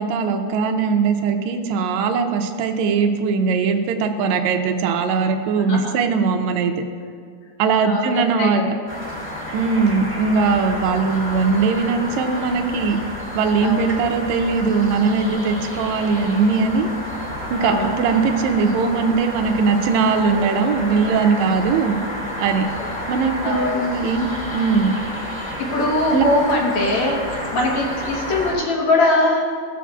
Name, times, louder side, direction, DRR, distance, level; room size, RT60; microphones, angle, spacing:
voice 1, 0.0-6.7 7.6-8.7 9.5-13.0 13.3-16.9 17.5-22.0 22.4-22.7 23.1-24.9 26.1-26.2, right 5 dB, 80° right, 5 dB, 1.7 m, -20 dB
voice 2, 5.6-5.9 7.8-8.1 8.4-8.7 13.6-13.9 17.6-17.9 23.4-23.8 25.6-29.5, left 2 dB, 65° left, -2 dB, 2.3 m, -21 dB
sound 1, 8.9-28.5, equal, 10° left, 1.8 m, -30 dB
17.0 x 7.2 x 2.4 m, 2.1 s
omnidirectional pair, 3.8 m